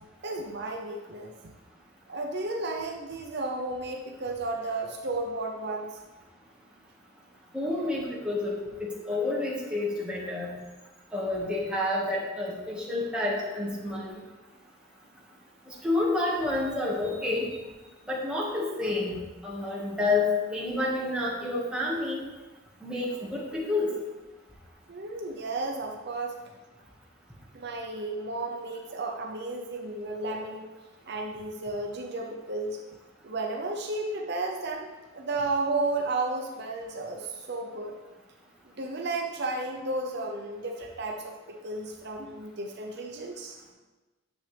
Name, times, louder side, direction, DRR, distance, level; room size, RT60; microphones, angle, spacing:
voice 1, 0.2-1.3 2.1-6.0 24.9-26.3 27.5-30.7 31.1-32.8 33.2-34.9 35.1-37.9 38.8-43.6, right 2 dB, 60° right, 2 dB, 0.7 m, -33 dB
voice 2, 7.5-10.5 11.1-14.2 15.7-17.4 18.1-22.2 22.8-23.9, left 2 dB, 5° right, -5 dB, 1.7 m, -29 dB
9.0 x 6.9 x 3.4 m, 1.2 s
head